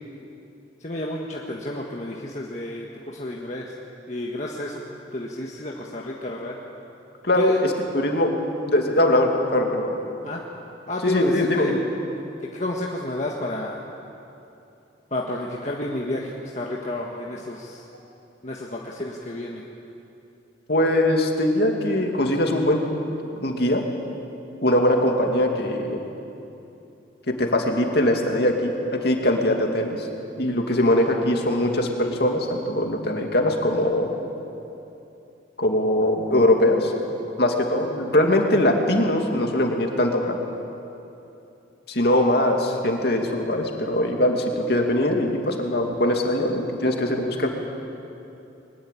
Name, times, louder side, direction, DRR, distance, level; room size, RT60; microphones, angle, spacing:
voice 1, 0.8-3.8 4.1-4.8 5.1-6.6 7.3-7.6 10.2-10.4 10.9-11.7 12.4-13.8 15.1-17.9 18.4-19.6, left 1 dB, 40° left, -2 dB, 1.7 m, -30 dB
voice 2, 7.9-8.3 8.7-10.0 11.0-11.8 20.7-22.8 23.4-23.8 24.6-26.0 27.3-30.1 30.4-34.1 35.6-36.9 37.4-40.4 41.9-47.5, left 1 dB, 55° left, 2 dB, 2.7 m, -21 dB
22.5 x 20.5 x 8.6 m, 2.8 s
head